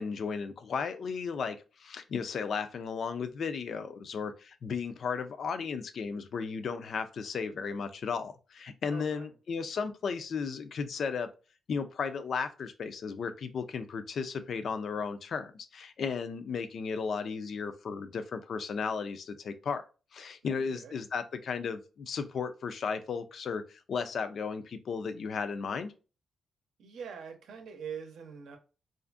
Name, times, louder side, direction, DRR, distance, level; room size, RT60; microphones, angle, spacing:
voice 1, 0.0-11.3 11.7-19.8 20.1-25.9, left 5 dB, 55° left, 9 dB, 0.4 m, -35 dB
voice 2, 8.9-9.3 20.4-20.9 26.8-28.6, right 7 dB, 85° right, 4 dB, 0.6 m, -43 dB
2.5 x 2.4 x 2.4 m, 0.33 s
cardioid pair, 135°, 0 cm